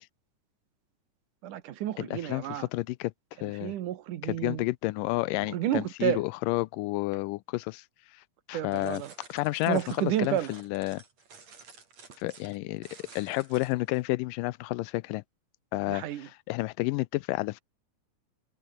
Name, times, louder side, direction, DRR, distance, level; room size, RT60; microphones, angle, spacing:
voice 1, 1.4-2.7 3.6-4.6 5.5-6.2 8.5-9.1 9.7-10.5 15.9-16.3, right 12 dB, 70° right, 2.7 m, -31 dB
voice 2, 2.0-3.1 3.4-3.7 4.2-7.8 8.5-9.0 9.3-11.0 12.2-12.9 13.2-15.2 15.7-17.6, left 20 dB, 85° left, 2.2 m, -30 dB
sound 1, 8.7-14.0, right 5 dB, 50° right, 5.2 m, -52 dB
omnidirectional pair, 3.9 m